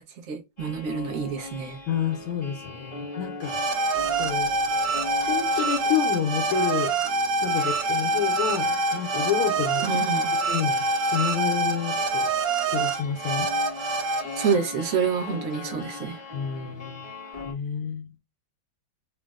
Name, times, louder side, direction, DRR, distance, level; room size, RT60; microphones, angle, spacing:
voice 1, 0.3-1.8 9.8-10.4 14.4-16.2, right 6 dB, 65° right, 0.8 m, -27 dB
sound 1, 0.6-17.5, left 4 dB, 50° left, 0.4 m, -40 dB
voice 2, 1.9-3.6 4.2-4.5 5.3-6.9 7.4-9.8 10.5-12.3 12.7-13.5 16.3-17.1 17.5-18.1, left 8 dB, 80° left, 1.5 m, -29 dB
sound 2, 3.4-14.5, right 3 dB, 85° right, 1.5 m, -26 dB
3.9 x 2.1 x 2.2 m
omnidirectional pair, 2.3 m